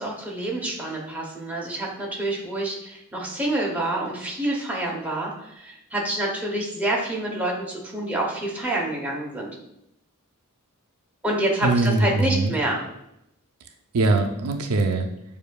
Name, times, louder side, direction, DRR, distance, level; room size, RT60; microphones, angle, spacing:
voice 1, 0.0-9.5 11.2-12.8, right 1 dB, 5° right, -3 dB, 0.8 m, -27 dB
voice 2, 11.6-12.5 13.9-15.1, right 3 dB, 80° right, 4 dB, 0.5 m, -22 dB
6.8 x 2.6 x 2.3 m, 0.80 s
head